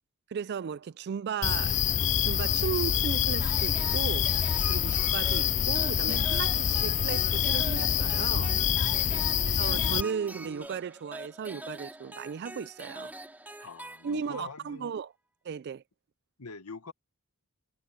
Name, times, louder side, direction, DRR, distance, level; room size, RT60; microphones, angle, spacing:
voice 1, 0.3-1.9 2.2-8.5 9.6-13.1 13.6-13.7 14.0-15.1 15.4-15.8, right 7 dB, 50° right, 0.3 m, -36 dB
sound 1, 1.4-10.0, left 9 dB, 35° left, 0.3 m, -26 dB
sound 2, 3.4-14.5, right 1 dB, 10° right, 2.4 m, -44 dB
sound 3, 5.3-10.7, right 2 dB, 90° right, 2.7 m, -46 dB
voice 2, 9.1-9.4 13.6-14.9 16.4-16.9, left 4 dB, 85° left, 1.4 m, -44 dB
head